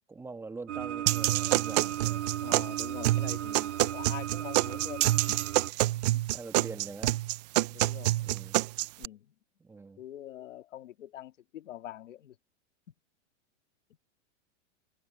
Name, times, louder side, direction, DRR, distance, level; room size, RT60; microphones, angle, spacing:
voice 1, 0.1-2.3 6.3-7.2 8.2-8.6 9.6-10.0, right 4 dB, 5° right, 1.4 m, -44 dB
sound 1, 0.7-5.7, right 12 dB, 70° right, 2.6 m, -36 dB
sound 2, 1.1-9.0, right 18 dB, 35° right, 0.4 m, -27 dB
voice 2, 2.4-5.4 6.1-6.2 6.5-6.8 7.7-8.2 9.0-9.3 10.0-12.4, left 12 dB, 90° left, 2.0 m, -45 dB
supercardioid pair, 155°, 36 cm